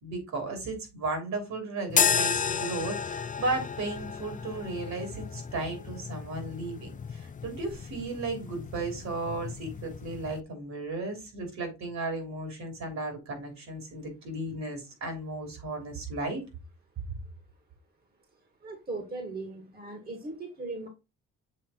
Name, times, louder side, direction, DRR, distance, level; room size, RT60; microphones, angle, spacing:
voice 1, 0.0-16.4, right 2 dB, 65° right, 3.3 m, -35 dB
sound 1, 1.9-10.4, left 6 dB, 25° left, 0.5 m, -33 dB
voice 2, 18.6-20.9, right 3 dB, 30° right, 1.5 m, -38 dB
7.4 x 3.3 x 4.3 m
cardioid pair, 90°, 30 cm